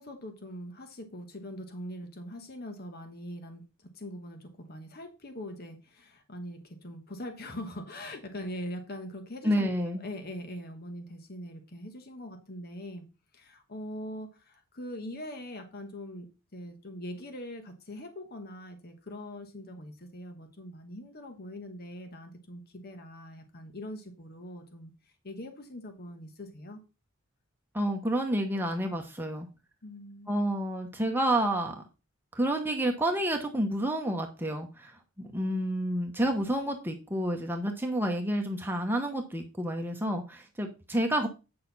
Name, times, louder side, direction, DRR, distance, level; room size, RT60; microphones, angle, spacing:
voice 1, 0.0-13.0 13.3-16.3 16.5-26.8 29.8-30.3, left 1 dB, 50° left, 6 dB, 1.2 m, -42 dB
voice 2, 9.4-10.0 27.7-29.5 30.3-31.7 32.3-34.9 35.2-41.3, right 1 dB, 10° right, 2 dB, 1.0 m, -29 dB
8.7 x 6.6 x 4.0 m, 0.29 s
head